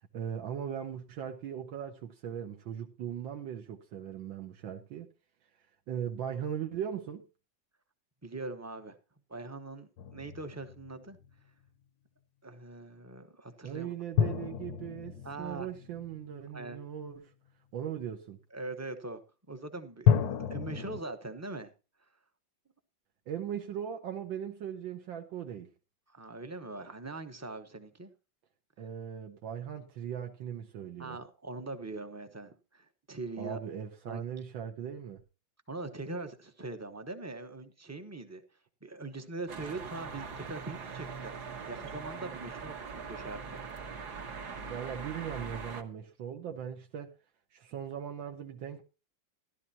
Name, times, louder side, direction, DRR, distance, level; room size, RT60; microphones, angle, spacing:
voice 1, 0.1-5.1 5.9-7.2 13.6-17.3 17.7-18.4 23.3-25.7 28.8-31.2 33.4-35.2 44.7-47.1 47.5-48.9, right 9 dB, 80° right, 1.7 m, -39 dB
voice 2, 8.2-9.0 9.3-11.2 12.4-13.9 15.2-15.7 16.5-16.8 18.5-19.2 19.5-21.7 26.1-28.1 31.0-33.6 34.1-34.2 35.7-38.4 38.8-43.6, right 2 dB, 15° right, 0.5 m, -42 dB
sound 1, 10.0-11.3 14.1-16.7 20.1-21.0, left 8 dB, 75° left, 1.4 m, -30 dB
sound 2, 39.5-45.8, right 5 dB, 60° right, 1.8 m, -42 dB
13.5 x 12.5 x 2.8 m
omnidirectional pair, 2.1 m